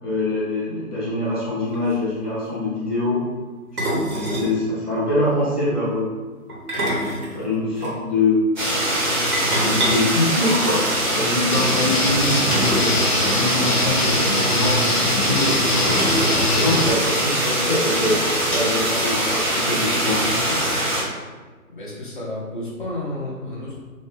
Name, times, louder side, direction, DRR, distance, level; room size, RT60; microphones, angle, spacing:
voice 1, 0.0-3.2 3.9-6.1 7.3-8.4 9.5-13.0 13.2-16.0 16.3-20.6, left 2 dB, 5° left, -24 dB, 0.9 m, -24 dB
sound 1, 1.4-1.5 1.7-2.0 3.8-4.6 6.5-7.9 9.3-11.0 12.5-13.0 13.2-13.3 13.6-13.8 14.8-14.9 15.8-16.7, right 1 dB, 75° right, 1.3 m, -26 dB
sound 2, 8.6-21.0, right 1 dB, 30° right, 0.8 m, -22 dB
Guitar, 11.5-16.9, left 3 dB, 80° left, 0.7 m, -24 dB
voice 2, 21.7-23.8, left 1 dB, 35° left, -5 dB, 0.7 m, -32 dB
2.6 x 2.6 x 3.4 m, 1.4 s
figure-of-eight pair, 160°, 45 cm